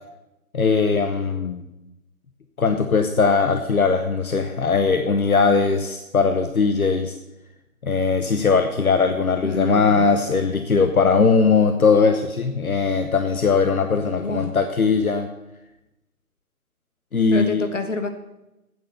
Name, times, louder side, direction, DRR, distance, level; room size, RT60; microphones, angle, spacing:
voice 1, 0.5-1.6 2.6-7.2 7.8-15.3 17.1-17.6, left 4 dB, 70° left, 7 dB, 0.9 m, -20 dB
voice 2, 9.4-10.1 14.1-14.5 17.3-18.1, left 3 dB, 55° left, 7 dB, 1.4 m, -28 dB
8.6 x 7.2 x 6.7 m, 0.93 s
figure-of-eight pair, 175°, 44 cm